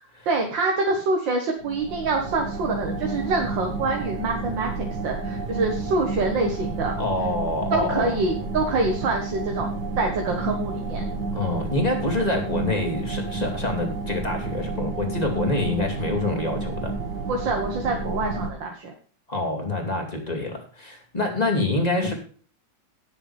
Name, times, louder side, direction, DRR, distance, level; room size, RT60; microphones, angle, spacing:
voice 1, 0.3-7.0 7.7-11.0 17.3-18.9, right 3 dB, 80° right, 2 dB, 2.2 m, -26 dB
sound 1, 1.6-18.5, right 3 dB, 65° right, 2.4 m, -31 dB
voice 2, 7.0-8.1 11.3-16.9 19.3-22.1, left 2 dB, 20° left, 1 dB, 2.7 m, -26 dB
18.0 x 7.1 x 3.4 m, 0.43 s
omnidirectional pair, 2.0 m